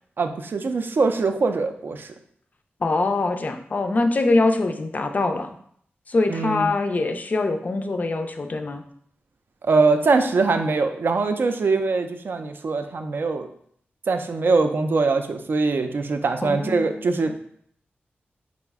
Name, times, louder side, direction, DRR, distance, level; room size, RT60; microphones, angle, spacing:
voice 1, 0.2-2.1 6.3-6.7 9.6-13.5 14.1-17.4, right 4 dB, 60° right, 7 dB, 0.4 m, -22 dB
voice 2, 2.8-5.5 6.1-8.8 16.4-17.0, left 2 dB, 40° left, 6 dB, 0.3 m, -23 dB
4.7 x 2.1 x 3.4 m, 0.65 s
wide cardioid pair, 105°, 4 cm